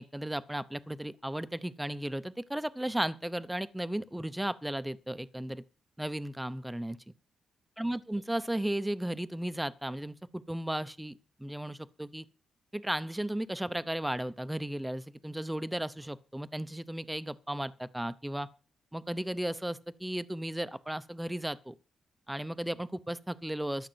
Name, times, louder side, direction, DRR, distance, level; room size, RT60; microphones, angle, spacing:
voice 1, 0.0-5.6 6.0-7.0 7.8-12.2 12.7-18.5 18.9-21.7 22.3-23.9, right 1 dB, 5° right, 0.7 m, -35 dB
13.5 x 6.5 x 7.9 m
cardioid pair, 125°, 0 cm